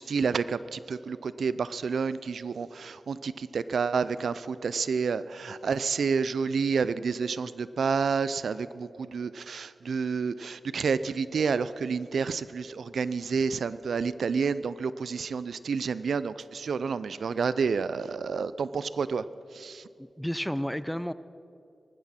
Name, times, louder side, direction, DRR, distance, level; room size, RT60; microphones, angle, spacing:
voice 1, 0.0-19.3 19.5-19.9, right 5 dB, 85° right, 15 dB, 0.4 m, -29 dB
voice 2, 20.0-21.1, equal, 5° left, 15 dB, 0.4 m, -31 dB
19.0 x 14.5 x 4.2 m, 2.6 s
wide cardioid pair, 70°, 0 cm